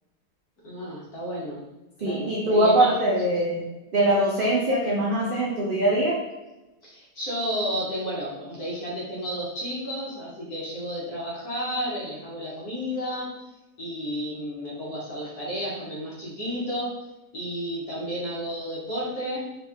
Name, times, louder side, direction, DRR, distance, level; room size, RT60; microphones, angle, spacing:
voice 1, 0.6-1.6 2.0-2.9 6.8-13.3 13.8-16.9 17.3-19.5, equal, 75° left, -5 dB, 1.7 m, -32 dB
voice 2, 2.0-6.2, right 1 dB, 65° right, -4 dB, 0.5 m, -22 dB
3.4 x 3.0 x 3.5 m, 1.0 s
omnidirectional pair, 1.7 m